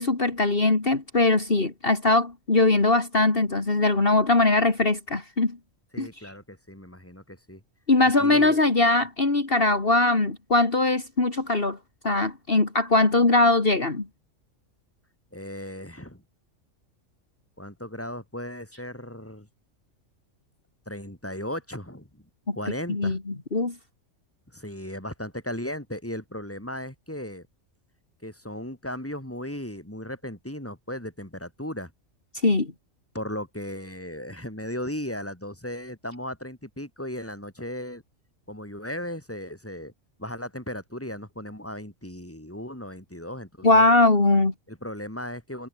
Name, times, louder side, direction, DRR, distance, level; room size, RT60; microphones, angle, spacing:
voice 1, 0.0-5.6 6.0-6.3 7.9-11.8 12.0-14.1 22.5-22.6 22.9-23.2 23.5-23.7 32.4-32.7 43.6-44.5, left 2 dB, 45° left, 2.9 m, -21 dB
voice 2, 5.9-7.6 8.0-8.6 15.3-16.2 17.6-19.5 20.9-22.2 22.5-23.2 24.5-27.5 28.2-31.9 33.1-38.0 38.5-39.9 40.2-43.9 44.7-45.7, left 1 dB, 10° left, 5.2 m, -36 dB
omnidirectional pair, 1.3 m